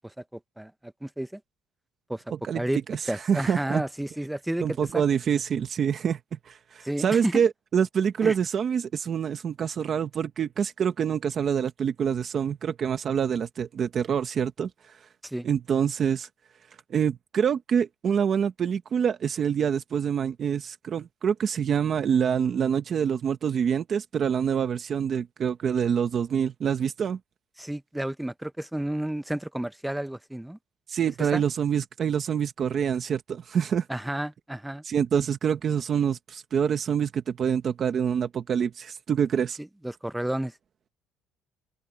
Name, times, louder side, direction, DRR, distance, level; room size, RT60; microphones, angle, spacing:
voice 1, 0.0-1.4 2.1-2.2 2.5-2.8 3.1-5.0 6.8-7.4 8.2-8.3 15.2-15.5 27.6-30.6 31.2-31.4 33.9-34.8 39.6-40.5, right 1 dB, 5° right, 0.7 m, -31 dB
voice 2, 2.9-3.8 4.6-15.1 15.4-16.3 16.9-27.2 30.9-33.9 34.8-39.6, right 7 dB, 30° right, 0.9 m, -26 dB
cardioid pair, 175°, 0 cm